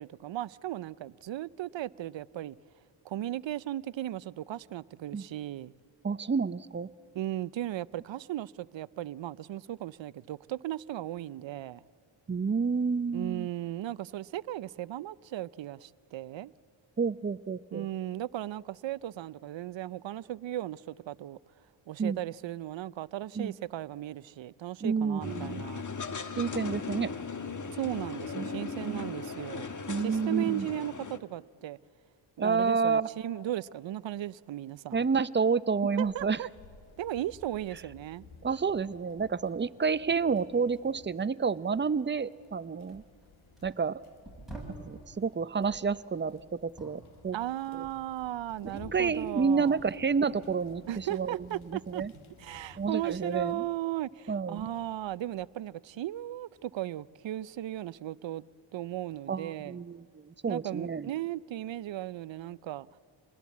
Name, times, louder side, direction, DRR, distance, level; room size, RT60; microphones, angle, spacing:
voice 1, 0.0-2.6 3.0-5.7 7.1-11.8 13.1-16.5 17.7-21.4 21.9-25.8 27.7-29.7 30.0-31.8 32.4-35.1 36.0-36.5 37.0-38.3 47.3-49.8 50.9-52.0 52.4-58.4 58.7-59.8 60.5-62.9, right 13 dB, 65° right, 0.6 m, -36 dB
voice 2, 6.0-6.9 12.3-13.5 17.0-17.9 22.0-22.2 23.4-23.5 24.8-25.6 26.4-27.1 28.3-29.1 29.9-30.7 32.4-33.1 34.9-36.4 38.4-43.0 43.6-44.0 44.8-47.4 47.7-47.9 48.9-51.4 51.6-52.1 52.8-53.6 54.3-54.7 59.3-61.1, right 5 dB, 25° right, 0.6 m, -29 dB
sound 1, 25.2-31.2, left 5 dB, 35° left, 1.5 m, -38 dB
sound 2, 36.0-53.5, left 4 dB, 70° left, 2.5 m, -55 dB
sound 3, 42.4-42.6 42.9-45.0 45.6-48.9 49.2-53.0 53.3-55.6 56.1-56.8 57.6-57.8, right 2 dB, ahead, 7.6 m, -52 dB
27.5 x 20.0 x 8.4 m
cardioid pair, 70°, 50 cm